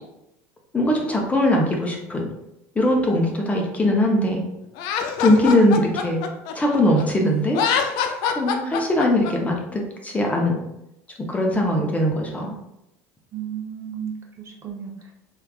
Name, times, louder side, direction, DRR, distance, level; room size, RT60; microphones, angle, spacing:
voice 1, 0.7-2.2 2.8-4.4 5.2-6.2 6.5-7.6 8.3-10.6 11.2-12.5, left 1 dB, 15° left, 0 dB, 0.6 m, -20 dB
Laughter, 4.8-7.0 7.5-9.3, left 7 dB, 65° left, 0.4 m, -24 dB
voice 2, 13.3-15.1, right 8 dB, 35° right, 0 dB, 0.6 m, -34 dB
3.4 x 2.4 x 2.2 m, 0.85 s
hypercardioid pair, 85°, 8 cm